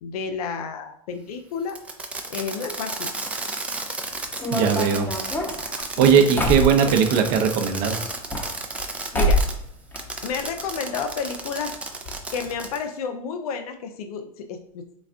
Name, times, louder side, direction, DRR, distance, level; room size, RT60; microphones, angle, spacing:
voice 1, 0.0-1.8 2.3-3.1 6.0-6.4 9.1-9.4 10.2-11.7 12.3-14.8, left 5 dB, 75° left, 6 dB, 0.5 m, -31 dB
Fireworks, 1.7-9.5 10.0-12.8, right 2 dB, 5° right, 0.4 m, -33 dB
sound 1, 4.3-7.2 8.1-8.9 9.1-9.6 9.9-10.7 11.0-11.1 11.3-11.4 12.1-12.2 12.5-12.6, equal, 10° left, 0.8 m, -26 dB
voice 2, 4.5-5.1 6.0-8.0, right 7 dB, 45° right, 6 dB, 0.6 m, -19 dB
3.9 x 2.4 x 3.4 m, 0.71 s
hypercardioid pair, 115°, 19 cm